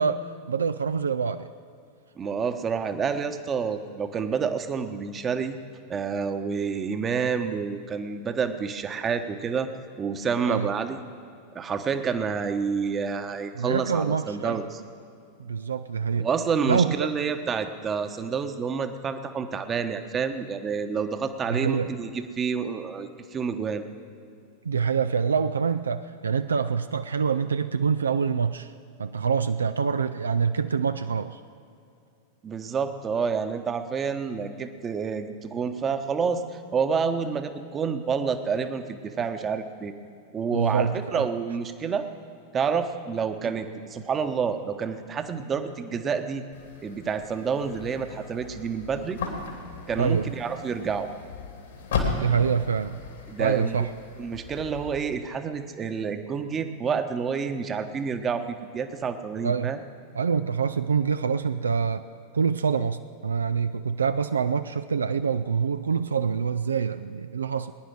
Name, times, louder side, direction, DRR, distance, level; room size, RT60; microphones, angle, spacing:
voice 1, 0.0-1.5 10.4-10.7 13.5-14.6 15.4-16.3 16.7-17.1 21.5-21.9 24.6-28.7 29.0-31.4 40.5-41.3 50.0-50.3 52.2-53.0 53.4-53.9 59.4-59.7 60.2-62.1 62.3-67.7, right 6 dB, 70° right, 10 dB, 0.4 m, -25 dB
voice 2, 2.2-5.6 5.9-9.7 10.0-11.0 11.5-14.8 16.2-23.8 32.4-39.9 40.3-42.1 42.5-46.4 46.8-49.2 49.9-51.1 53.3-53.9 54.2-59.8, right 6 dB, 25° right, 8 dB, 1.0 m, -28 dB
sound 1, 46.5-55.0, left 4 dB, 65° left, 2.6 m, -36 dB
20.5 x 10.5 x 6.2 m, 2.6 s
figure-of-eight pair, 90°, 0 cm